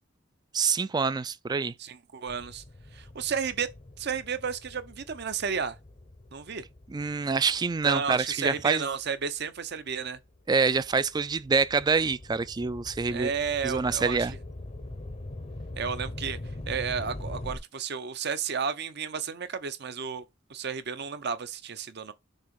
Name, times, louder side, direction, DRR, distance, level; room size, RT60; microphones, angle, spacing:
voice 1, 0.5-1.7 6.9-8.8 10.5-13.3 13.6-14.3, right 4 dB, 20° right, 0.3 m, -26 dB
voice 2, 1.8-2.6 2.9-3.7 4.0-5.8 6.3-6.6 7.8-10.2 13.1-14.4 15.8-16.4 16.7-20.2 20.5-22.1, right 6 dB, 60° right, 0.7 m, -32 dB
sound 1, 2.3-9.0 9.6-17.6, left 1 dB, 35° left, 0.7 m, -43 dB
6.6 x 2.9 x 5.2 m
head